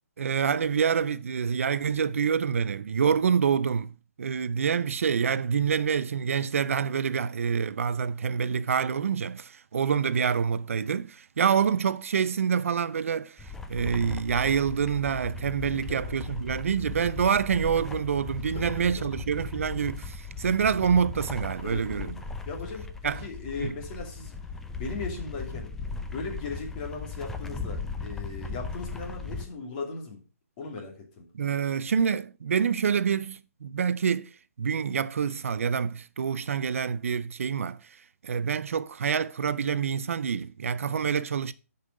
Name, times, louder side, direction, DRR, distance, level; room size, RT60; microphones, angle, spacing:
voice 1, 0.2-3.9 4.2-22.2 23.0-23.3 23.6-23.8 31.3-38.0 38.2-41.5, right 7 dB, 60° right, 0.5 m, -27 dB
sound 1, 13.4-29.5, left 4 dB, 5° left, 0.5 m, -38 dB
voice 2, 15.7-16.3 18.5-19.1 20.4-20.5 21.6-24.3 24.8-25.7 26.1-30.2 30.6-31.2, left 4 dB, 30° left, 2.8 m, -38 dB
10.5 x 5.5 x 4.9 m
hypercardioid pair, 155°, 8 cm